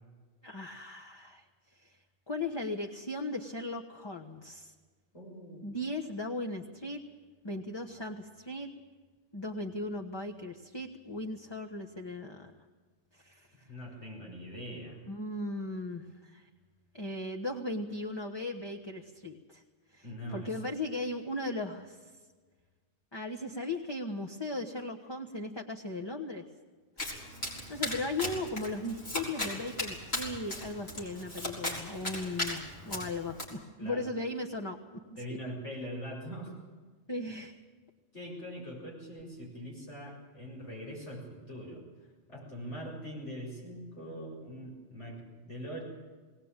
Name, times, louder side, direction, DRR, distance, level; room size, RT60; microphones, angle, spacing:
voice 1, 0.4-1.4 1.8-2.0 2.3-4.7 5.6-7.0 7.4-8.7 9.3-12.5 13.1-13.7 15.1-16.5 16.9-19.6 19.9-20.0 20.3-22.1 23.1-26.4 27.7-34.8 35.3-35.4 37.1-37.6, left 2 dB, 25° left, 1 dB, 1.3 m, -37 dB
voice 2, 5.1-5.7 13.7-15.0 20.0-20.5 27.7-27.9 33.1-33.4 33.8-34.0 35.2-36.5 38.1-41.8 42.3-45.8, equal, 80° left, -3 dB, 7.4 m, -42 dB
Domestic sounds home sounds, 27.0-33.4, left 1 dB, 60° left, 5.0 m, -37 dB
20.0 x 18.5 x 9.0 m, 1.4 s
omnidirectional pair, 1.2 m